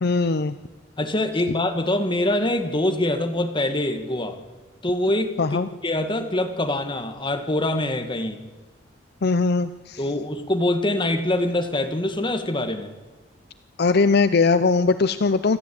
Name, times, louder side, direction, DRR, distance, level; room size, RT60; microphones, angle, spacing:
voice 1, 0.0-0.6 5.4-5.7 9.2-10.0 13.8-15.6, left 4 dB, 55° left, 12 dB, 0.6 m, -20 dB
voice 2, 1.0-4.4 4.8-5.3 5.8-8.4 10.0-12.9, left 1 dB, 25° left, 6 dB, 1.7 m, -24 dB
27.0 x 13.0 x 8.6 m, 1.3 s
head